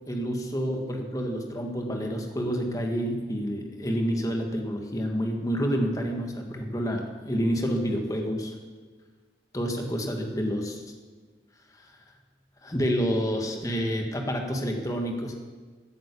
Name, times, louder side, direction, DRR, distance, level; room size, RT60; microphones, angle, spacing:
voice 1, 0.1-8.5 9.5-10.8 12.6-15.4, equal, 20° left, 2 dB, 1.9 m, -28 dB
15.0 x 9.6 x 8.5 m, 1.4 s
head